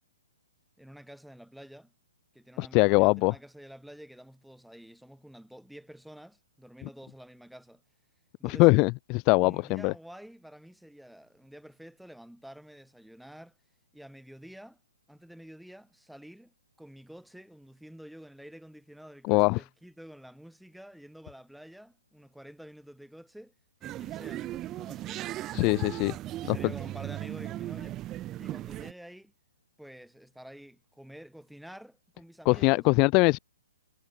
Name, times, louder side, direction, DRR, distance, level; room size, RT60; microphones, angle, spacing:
voice 1, 0.8-1.9 2.3-7.8 8.4-8.7 9.4-13.5 13.9-14.8 15.1-23.5 23.8-25.8 26.4-28.0 28.4-29.3 29.8-32.9, equal, ahead, 6.4 m, -49 dB
voice 2, 2.6-3.3 8.4-9.9 19.2-19.6 25.5-26.2 26.5-26.7 32.5-33.4, left 28 dB, 30° left, 0.3 m, -22 dB
sound 1, 23.8-28.9, right 14 dB, 20° right, 1.1 m, -37 dB
hypercardioid pair, 145°, 0 cm